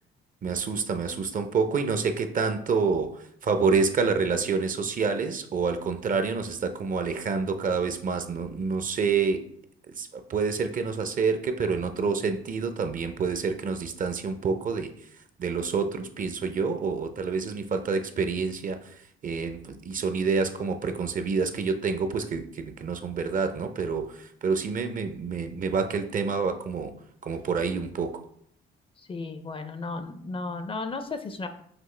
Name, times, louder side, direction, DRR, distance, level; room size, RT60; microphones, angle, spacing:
voice 1, 0.4-9.4 9.9-14.9 15.4-18.9 19.2-26.9 27.2-28.2, right 5 dB, 45° right, 8 dB, 0.5 m, -28 dB
voice 2, 29.0-31.5, left 3 dB, 25° left, 8 dB, 0.4 m, -34 dB
5.9 x 2.4 x 3.2 m, 0.67 s
cardioid pair, 90°, 20 cm